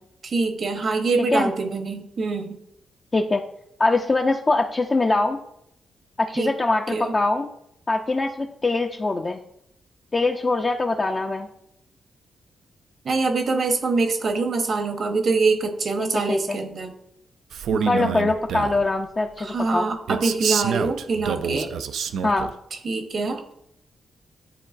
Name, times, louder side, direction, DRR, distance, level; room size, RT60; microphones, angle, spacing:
voice 1, 0.2-2.6 6.4-6.5 6.9-7.1 13.0-16.9 17.7-18.2 19.4-21.7 22.8-23.4, right 3 dB, 60° right, 6 dB, 0.9 m, -24 dB
voice 2, 3.1-3.4 3.8-5.4 6.2-7.5 7.9-9.4 10.1-11.5 16.0-16.6 17.9-19.9 22.2-22.5, left 2 dB, 35° left, 2 dB, 0.5 m, -23 dB
Male speech man speaking, 17.5-18.8 20.1-22.5, right 7 dB, 80° right, 0.3 m, -27 dB
9.7 x 3.8 x 2.5 m, 0.77 s
cardioid pair, 65°, 0 cm